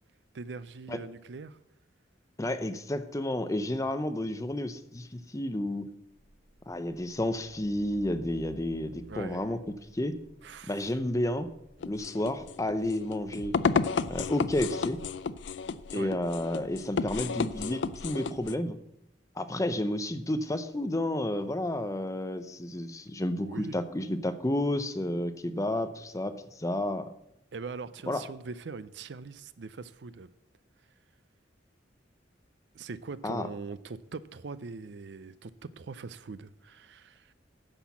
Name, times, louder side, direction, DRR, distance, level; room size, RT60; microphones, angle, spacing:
voice 1, 0.3-1.6 9.1-9.5 10.4-10.9 15.9-16.1 23.4-23.8 27.5-30.3 32.7-37.3, right 4 dB, 65° right, 0.5 m, -42 dB
voice 2, 2.4-5.9 6.7-9.6 9.9-10.1 10.7-11.5 11.9-13.6 14.1-15.0 15.9-18.8 19.4-27.1 28.1-28.2 33.2-33.5, left 1 dB, 15° left, 0.6 m, -31 dB
Truck, 6.1-17.4, equal, 50° left, 4.6 m, -56 dB
sound 1, 11.8-18.5, left 5 dB, 75° left, 0.4 m, -32 dB
9.9 x 6.1 x 7.1 m
head